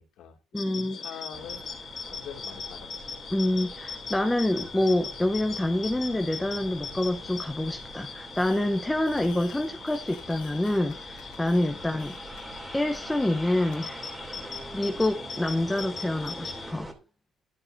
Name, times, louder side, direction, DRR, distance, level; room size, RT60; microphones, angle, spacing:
voice 1, 0.0-0.4 0.7-3.1 11.6-11.8, left 8 dB, 75° left, 2.1 m, -44 dB
voice 2, 0.5-1.0 3.3-12.1 12.7-14.1 14.4-16.9, left 1 dB, 10° left, 0.7 m, -27 dB
sound 1, 0.6-16.7, left 5 dB, 45° left, 2.2 m, -40 dB
sound 2, 1.3-16.9, right 1 dB, 10° right, 2.7 m, -44 dB
Fireworks, 8.4-8.8 9.0-11.7 12.0-12.4 12.9-13.0 13.7-13.8, left 12 dB, 90° left, 1.3 m, -53 dB
10.5 x 10.5 x 2.6 m
cardioid pair, 105°, 0 cm